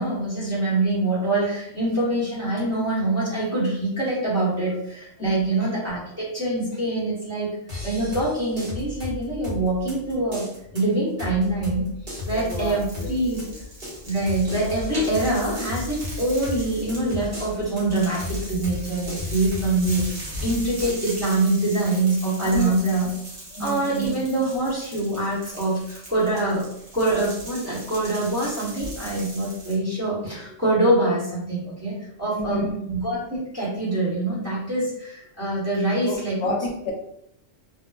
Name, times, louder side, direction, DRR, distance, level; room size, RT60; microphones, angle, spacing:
voice 1, 0.0-7.6 7.8-10.5 10.7-11.9 12.2-13.5 14.0-23.1 23.6-26.6 26.9-36.4, right 2 dB, 15° right, -9 dB, 0.9 m, -24 dB
voice 2, 5.2-5.5 12.3-13.1 13.5-13.6 22.5-22.8 23.5-24.2 32.3-32.9 36.0-36.9, left 1 dB, 75° left, 1 dB, 0.8 m, -30 dB
sound 1, 7.7-21.4, left 3 dB, 55° right, 1.4 m, -35 dB
sound 2, 12.1-29.7, equal, 75° right, 1.2 m, -39 dB
2.9 x 2.2 x 2.3 m, 0.75 s
omnidirectional pair, 1.1 m